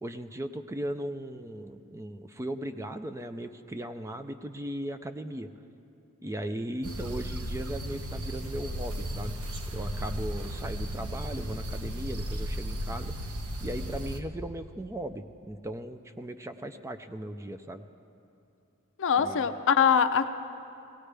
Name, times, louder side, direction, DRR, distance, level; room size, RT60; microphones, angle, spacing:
voice 1, 0.0-5.5 6.2-9.4 9.7-13.3 13.6-17.9 19.2-19.5, right 1 dB, 15° right, 9 dB, 0.4 m, -37 dB
sound 1, 6.8-14.2, equal, 80° right, 0.9 m, -35 dB
voice 2, 19.0-20.3, left 7 dB, 60° left, 10 dB, 0.5 m, -23 dB
18.5 x 17.0 x 3.4 m, 2.6 s
head